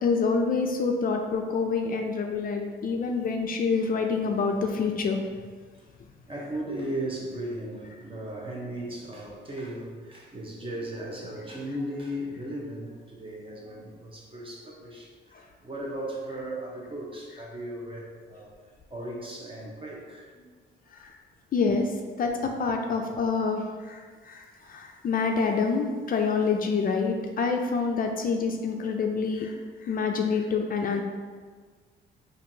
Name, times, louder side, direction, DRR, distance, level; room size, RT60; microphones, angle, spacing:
voice 1, 0.0-5.2 20.9-21.1 21.5-21.9 22.2-31.0, left 4 dB, 45° left, 3 dB, 0.4 m, -27 dB
voice 2, 6.3-20.5, right 1 dB, 25° right, -2 dB, 0.8 m, -37 dB
4.3 x 2.6 x 2.7 m, 1.5 s
cardioid pair, 90°, 20 cm